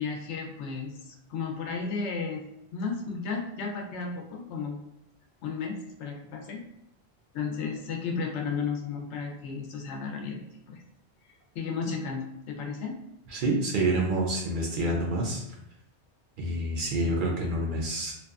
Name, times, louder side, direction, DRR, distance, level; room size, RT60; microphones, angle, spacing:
voice 1, 0.0-2.4 2.7-4.8 5.4-6.6 7.3-10.4 10.7-10.8 11.5-13.0, left 5 dB, 80° left, 1 dB, 0.9 m, -33 dB
voice 2, 13.3-15.4 16.4-18.1, right 1 dB, 60° right, -2 dB, 0.6 m, -27 dB
2.7 x 2.2 x 2.3 m, 0.81 s
omnidirectional pair, 1.1 m